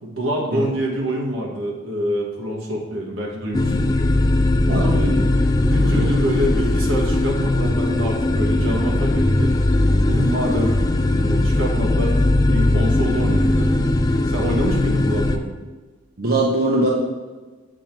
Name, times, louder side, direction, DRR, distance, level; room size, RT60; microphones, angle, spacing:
voice 1, 0.0-4.0 4.6-5.1 5.7-9.5 10.0-10.9 11.2-13.8 14.3-15.5, equal, 80° right, -2 dB, 1.4 m, -26 dB
sound 1, 3.5-15.4, left 1 dB, 20° left, 0.3 m, -19 dB
voice 2, 4.7-5.2 5.8-6.1 16.2-16.9, right 2 dB, 50° right, -2 dB, 0.9 m, -21 dB
7.5 x 3.7 x 4.4 m, 1.3 s
head